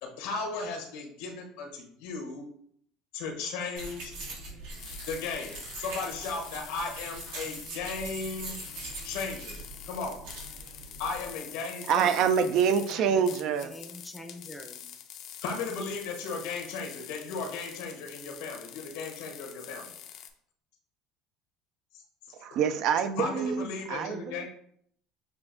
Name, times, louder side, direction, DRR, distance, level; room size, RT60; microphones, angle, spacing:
voice 1, 0.0-2.4 3.1-4.1 5.1-8.6 9.0-9.6 9.8-10.2 11.0-12.1 15.4-19.9 23.2-24.5, left 4 dB, 85° left, 1.0 m, -36 dB
sound 1, 3.8-11.3, right 2 dB, 85° right, 1.8 m, -42 dB
sound 2, 4.8-20.3, left 10 dB, 60° left, 0.5 m, -46 dB
voice 2, 11.9-13.7 22.3-24.5, right 7 dB, 60° right, 0.4 m, -26 dB
voice 3, 12.9-14.9 23.9-24.5, left 1 dB, ahead, 0.6 m, -46 dB
6.8 x 2.5 x 2.5 m
cardioid pair, 120°, 0 cm